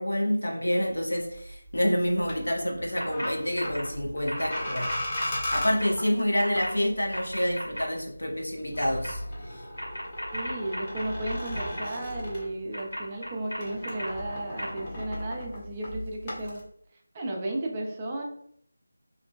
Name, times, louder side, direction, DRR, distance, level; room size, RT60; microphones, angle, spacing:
voice 1, 0.0-4.9 5.5-9.6, equal, 65° left, 0 dB, 0.7 m, -28 dB
sound 1, 0.6-13.0 13.3-16.6, left 1 dB, 20° left, 0.7 m, -38 dB
sound 2, 3.0-3.3 3.5-3.8 4.3-5.9 6.4-6.7 7.1-7.8 8.8-9.1 9.8-11.8 12.7-14.1 14.6-14.7, equal, 85° left, 1.2 m, -35 dB
voice 2, 6.3-6.6 10.3-16.6 17.1-18.2, right 1 dB, 20° right, -1 dB, 0.4 m, -34 dB
2.5 x 2.1 x 2.4 m, 0.67 s
figure-of-eight pair, 165°, 0 cm